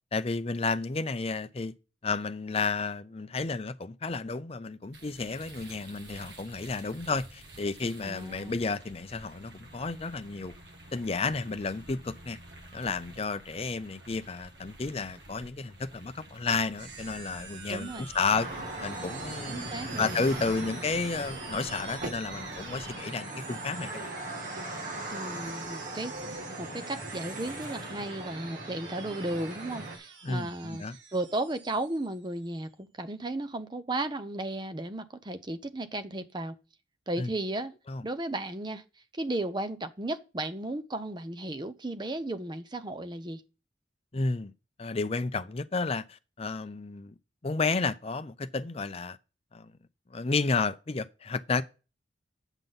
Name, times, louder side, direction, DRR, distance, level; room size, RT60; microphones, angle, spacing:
voice 1, 0.1-1.7 2.0-10.5 10.9-12.4 12.7-18.5 18.8-19.7 20.0-24.1 30.2-31.0 37.2-37.3 37.9-38.0 44.1-44.5 44.8-47.1 47.4-49.2 49.5-49.7 50.1-51.6, left 4 dB, 30° left, 0.5 m, -32 dB
sound 1, 4.9-22.9, right 1 dB, 65° right, 1.7 m, -50 dB
voice 2, 8.0-8.6 17.7-18.1 19.5-20.1 25.1-26.1 26.6-30.8 31.1-36.6 37.1-37.7 38.0-38.8 39.1-43.4, right 2 dB, 25° right, 0.7 m, -34 dB
sound 2, 16.8-32.6, right 5 dB, 85° right, 1.6 m, -47 dB
sound 3, 18.3-30.0, right 2 dB, 45° right, 1.9 m, -39 dB
9.1 x 6.0 x 5.3 m
head